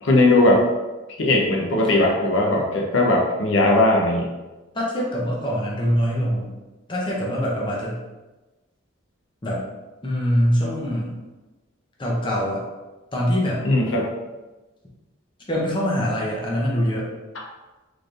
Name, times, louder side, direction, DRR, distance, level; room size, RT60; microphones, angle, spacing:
voice 1, 0.0-0.6 1.2-4.3 13.6-14.1, left 2 dB, 75° left, -1 dB, 0.7 m, -18 dB
voice 2, 4.7-6.5 6.9-8.0 9.4-9.6 10.0-11.2 12.0-12.6 13.1-13.6 15.5-17.1, equal, 25° left, -4 dB, 0.7 m, -23 dB
4.2 x 3.3 x 2.5 m, 1.1 s
head